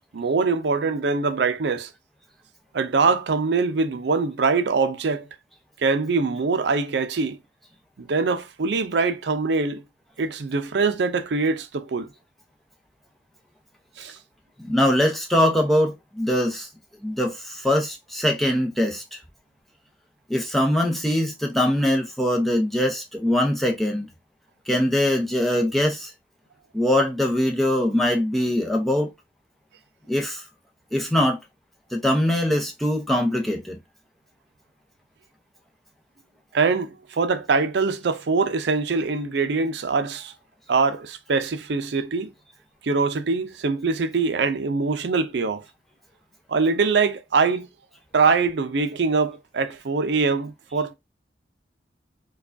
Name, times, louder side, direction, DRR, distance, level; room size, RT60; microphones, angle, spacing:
voice 1, 0.0-1.9 2.7-5.3 5.8-7.4 8.0-9.8 10.2-12.1 14.0-14.2 36.5-40.3 40.7-42.3 42.8-45.6 46.5-47.7 48.1-50.9, right 4 dB, 75° right, 0.5 m, -23 dB
voice 2, 14.6-16.7 17.0-19.2 20.3-24.1 24.7-26.1 26.7-29.1 30.1-30.4 30.9-31.4 31.9-33.8, left 1 dB, ahead, 0.6 m, -22 dB
4.6 x 2.3 x 2.5 m
head